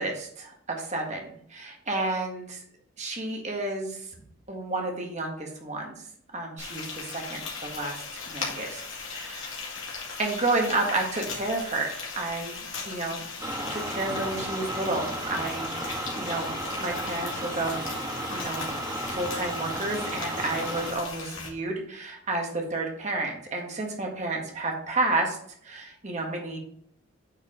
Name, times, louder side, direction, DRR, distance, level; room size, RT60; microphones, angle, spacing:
voice 1, 0.0-2.6 3.0-4.0 4.5-5.9 6.3-8.8 9.1-9.5 10.2-13.2 13.7-17.8 18.3-18.7 19.1-25.4 25.6-26.6, right 2 dB, 30° right, 1 dB, 1.6 m, -31 dB
Frying (food), 6.6-21.5, left 4 dB, 65° left, 2.2 m, -38 dB
sound 1, 13.4-20.9, right 1 dB, 15° right, 1.1 m, -34 dB
8.9 x 4.8 x 3.8 m, 0.66 s
head